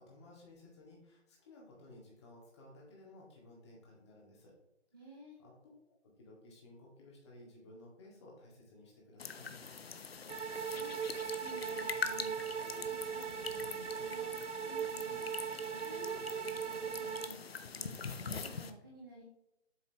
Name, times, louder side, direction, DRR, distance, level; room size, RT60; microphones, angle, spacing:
voice 1, 0.0-4.5 5.4-5.6 6.0-9.6 15.5-15.7, left 1 dB, 25° left, -4 dB, 2.0 m, -56 dB
voice 2, 4.9-5.4 10.7-10.9 11.4-12.3 12.6-14.3 14.6-15.2 15.7-17.4 17.8-19.2, right 1 dB, 20° right, -5 dB, 0.6 m, -52 dB
sound 1, 9.2-18.7, left 5 dB, 55° left, 0.7 m, -43 dB
sound 2, 10.3-17.3, right 7 dB, 80° right, 0.5 m, -39 dB
7.8 x 6.4 x 2.9 m, 0.88 s
figure-of-eight pair, 160°, 36 cm